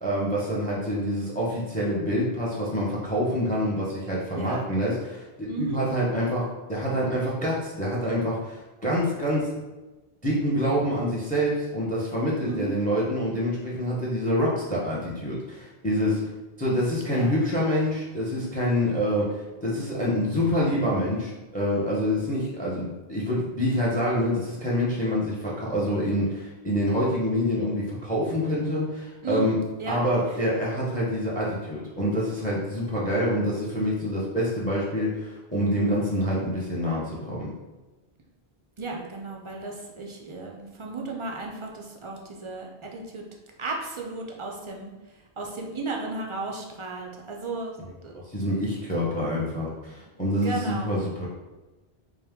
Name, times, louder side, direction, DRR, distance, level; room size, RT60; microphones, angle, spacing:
voice 1, 0.0-9.5 10.2-16.2 16.6-29.6 29.9-37.5 48.3-51.3, equal, 10° left, -4 dB, 0.6 m, -26 dB
voice 2, 4.3-4.7 5.4-5.8 12.4-12.7 17.1-17.3 29.2-30.0 30.3-30.4 38.8-43.2 43.6-44.9 45.4-48.1 49.9-50.0 50.4-50.9, right 3 dB, 45° right, 0 dB, 0.4 m, -34 dB
4.5 x 2.3 x 3.5 m, 1.1 s
omnidirectional pair, 1.1 m